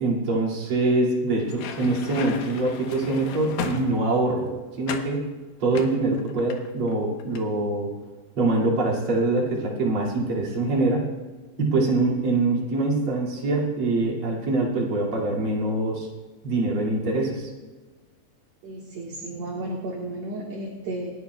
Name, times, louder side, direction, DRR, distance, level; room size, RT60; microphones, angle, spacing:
voice 1, 0.0-4.5 4.8-5.3 5.6-7.9 8.4-11.1 11.6-16.1 16.4-17.5, right 2 dB, 40° right, -3 dB, 3.0 m, -24 dB
sound 1, 1.4-4.3 4.9-5.2 5.7-6.9 7.2-7.5, left 6 dB, 80° left, 2.9 m, -35 dB
voice 2, 18.6-21.1, right 2 dB, 55° right, -2 dB, 2.4 m, -33 dB
27.5 x 11.0 x 2.3 m, 1.3 s
omnidirectional pair, 4.1 m